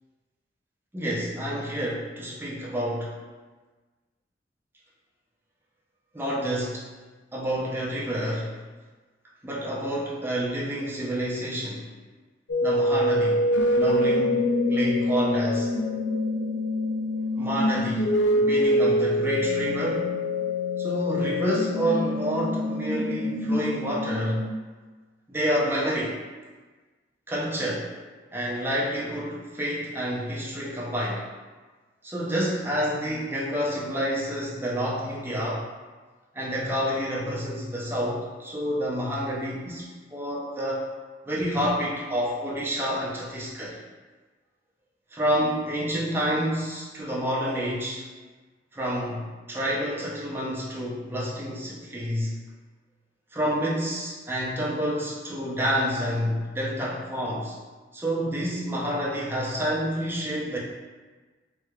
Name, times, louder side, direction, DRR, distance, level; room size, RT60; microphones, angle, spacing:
voice 1, 0.9-3.1 6.1-6.8 7.3-8.5 9.4-11.8 12.6-13.5 13.7-14.4 14.7-15.7 17.4-18.1 18.3-20.1 20.8-24.4 25.3-26.2 27.3-27.9 28.3-31.2 32.0-35.7 36.4-40.9 41.3-43.8 45.1-48.0 48.7-52.3 53.3-57.5 57.9-60.6, equal, 10° right, -6 dB, 0.5 m, -28 dB
sound 1, 12.5-24.5, left 1 dB, 90° left, 0.4 m, -25 dB
3.3 x 3.1 x 2.3 m, 1.3 s
head